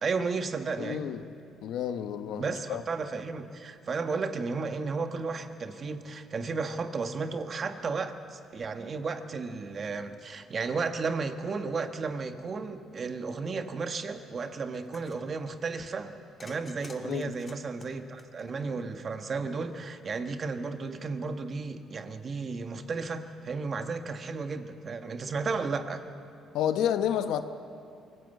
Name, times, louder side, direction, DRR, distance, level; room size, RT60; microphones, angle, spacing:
voice 1, 0.0-1.1 2.4-16.1 16.4-26.1, right 4 dB, 40° right, 1.4 m, -33 dB
voice 2, 0.8-1.2 1.6-2.8 17.0-17.3 26.5-27.4, left 9 dB, 80° left, 1.1 m, -30 dB
sound 1, 14.7-15.3 16.4-18.9, left 3 dB, 25° left, 1.9 m, -51 dB
24.0 x 16.0 x 8.2 m
cardioid pair, 110°, 0 cm